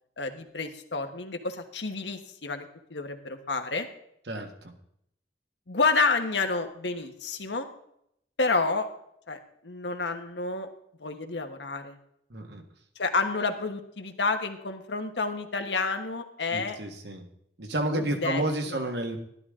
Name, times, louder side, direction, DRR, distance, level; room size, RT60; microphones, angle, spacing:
voice 1, 0.2-3.9 5.7-7.7 8.4-8.9 9.3-10.7 11.0-12.0 13.0-16.8 17.9-18.4 18.7-18.8, left 3 dB, 80° left, 6 dB, 1.3 m, -29 dB
voice 2, 4.3-4.7 12.3-12.6 16.5-17.3 17.6-19.2, right 1 dB, 70° right, 4 dB, 1.6 m, -31 dB
12.5 x 12.0 x 3.7 m, 0.73 s
head